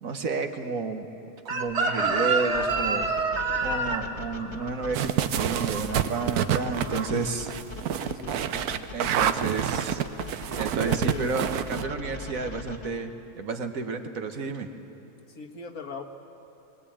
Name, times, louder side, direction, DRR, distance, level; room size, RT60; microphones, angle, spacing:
voice 1, 0.0-1.1 1.4-3.1 3.6-7.5 8.9-10.0 10.6-13.1 13.4-14.7, right 4 dB, 65° right, 6 dB, 1.6 m, -31 dB
Chicken rooster, 1.5-6.4 6.7-7.1, right 3 dB, 45° right, 1.6 m, -28 dB
sound 1, 2.5-12.9, left 3 dB, 35° left, 1.6 m, -40 dB
sound 2, 4.9-11.8, right 9 dB, 80° right, 1.3 m, -28 dB
voice 2, 8.0-9.2 9.5-9.8 10.8-11.4 15.4-16.0, left 5 dB, 70° left, 3 dB, 1.9 m, -41 dB
22.5 x 20.0 x 8.7 m, 2.8 s
omnidirectional pair, 1.6 m